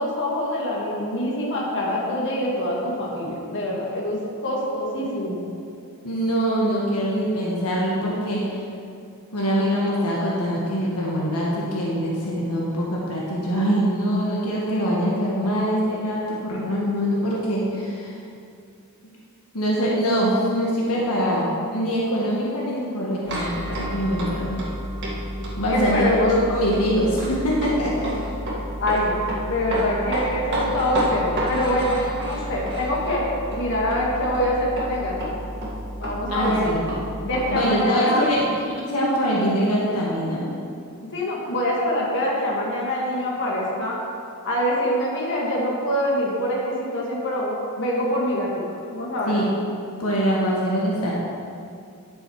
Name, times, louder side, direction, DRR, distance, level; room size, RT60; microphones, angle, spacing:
voice 1, 0.0-5.4 25.7-26.7 28.8-29.2 29.5-33.3 33.6-35.1 36.0-36.7 37.2-38.2 41.1-44.0 44.4-48.6 48.9-49.4, left 1 dB, 60° left, -4 dB, 2.0 m, -24 dB
voice 2, 6.0-8.6 9.3-18.1 19.5-24.6 25.6-28.1 36.3-36.8 37.5-40.5 49.3-49.5 50.0-51.1, equal, 85° left, -5 dB, 1.6 m, -23 dB
sound 1, 23.2-37.5, equal, 55° right, 2.1 m, -30 dB
10.5 x 6.6 x 4.8 m, 2.5 s
head